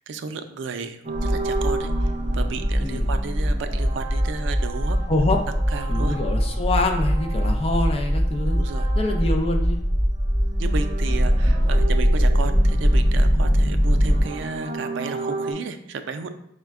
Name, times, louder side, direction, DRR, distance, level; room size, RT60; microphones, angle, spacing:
voice 1, 0.1-5.0 5.7-6.2 8.5-8.9 10.6-16.3, right 4 dB, 85° right, 8 dB, 0.4 m, -33 dB
sound 1, 1.0-9.6 9.9-15.5, right 3 dB, 35° right, 0.5 m, -35 dB
sound 2, 1.1-14.2, equal, ahead, 0.9 m, -21 dB
voice 2, 5.1-5.4 5.9-8.6 9.0-9.8 11.1-11.3, left 2 dB, 30° left, 3 dB, 0.4 m, -25 dB
4.8 x 2.2 x 3.4 m, 0.73 s
head